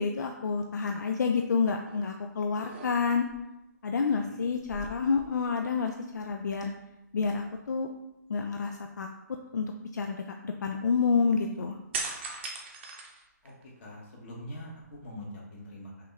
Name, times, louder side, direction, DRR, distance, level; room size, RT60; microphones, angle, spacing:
voice 1, 0.0-3.3 3.8-6.7 7.1-7.9 8.3-9.1 9.5-9.7 9.9-11.8, left 5 dB, 70° left, 3 dB, 0.4 m, -29 dB
sound 1, 1.9-2.1 2.5-3.4 4.5-5.8 6.1-6.3 11.9-13.8 14.3-15.2, right 3 dB, 35° right, 0.7 m, -40 dB
voice 2, 4.1-4.5 13.4-13.5 13.8-16.1, equal, 35° left, -3 dB, 1.4 m, -44 dB
5.7 x 2.4 x 3.3 m, 0.91 s
hypercardioid pair, 150°, 10 cm